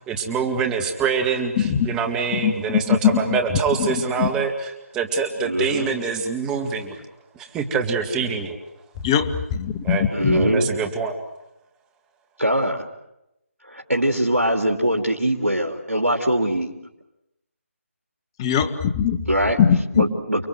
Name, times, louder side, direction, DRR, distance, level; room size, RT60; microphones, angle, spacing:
voice 1, 0.1-7.0 7.4-8.6 9.8-10.0 10.3-11.1, right 5 dB, 10° right, 5 dB, 2.1 m, -25 dB
voice 2, 2.3-3.4 3.8-4.3 9.0-10.5 18.4-19.2 19.6-20.0, left 8 dB, 20° left, 9 dB, 1.4 m, -21 dB
voice 3, 5.4-5.9 10.1-10.7 12.4-12.8 13.7-16.7 19.3-19.6 19.9-20.4, right 1 dB, 90° right, 1 dB, 3.3 m, -22 dB
29.5 x 22.0 x 8.0 m, 0.89 s
figure-of-eight pair, 155°, 8 cm